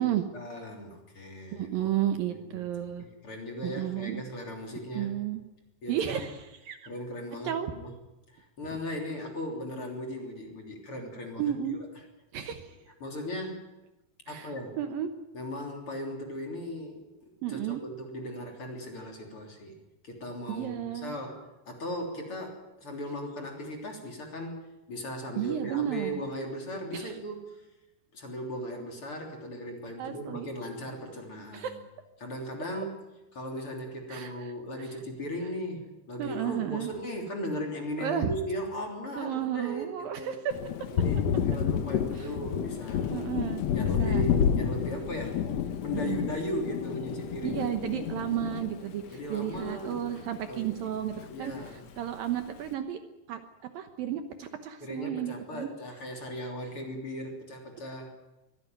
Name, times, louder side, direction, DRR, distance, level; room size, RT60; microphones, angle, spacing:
voice 1, 0.0-1.9 2.3-2.6 3.0-5.1 5.8-6.3 6.8-8.0 8.3-11.9 13.0-13.6 14.3-14.8 15.3-19.8 20.0-27.6 28.1-31.7 32.2-33.0 33.3-40.4 40.9-43.1 43.7-45.5 45.8-47.7 49.1-50.7 51.3-51.8 54.8-58.1, equal, 35° left, 2 dB, 3.9 m, -38 dB
voice 2, 1.5-3.1 3.6-4.2 4.9-5.4 5.9-6.9 7.4-7.7 11.4-11.8 12.3-12.8 14.3-15.1 17.4-17.8 20.5-21.1 25.4-26.1 26.9-27.2 30.0-30.5 31.5-31.7 34.1-34.3 36.2-36.9 38.0-38.3 39.2-40.6 42.2-42.3 43.1-44.2 45.9-46.3 47.4-51.5 52.0-53.0 53.3-53.4 53.7-55.7, right 11 dB, 70° right, 8 dB, 2.6 m, -32 dB
Thunder, 40.5-50.3 50.6-51.7, left 8 dB, 80° left, 1.4 m, -30 dB
23.5 x 16.5 x 9.3 m, 0.99 s
omnidirectional pair, 4.7 m